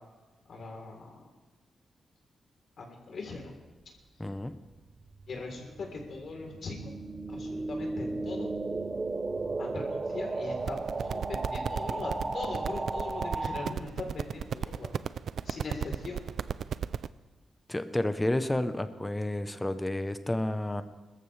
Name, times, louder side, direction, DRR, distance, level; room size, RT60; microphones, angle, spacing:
voice 1, 0.5-1.1 2.8-3.5 5.3-6.9 7.3-8.5 9.6-14.9 15.4-16.2, left 3 dB, 55° left, 1 dB, 3.6 m, -40 dB
voice 2, 4.2-4.5 17.7-20.8, left 1 dB, 10° left, 10 dB, 0.8 m, -30 dB
sound 1, 4.5-13.7, right 3 dB, 25° right, 0.8 m, -35 dB
sound 2, 10.6-17.1, right 8 dB, 70° right, 0.4 m, -35 dB
26.5 x 14.0 x 3.3 m, 1.2 s
wide cardioid pair, 135°, 0 cm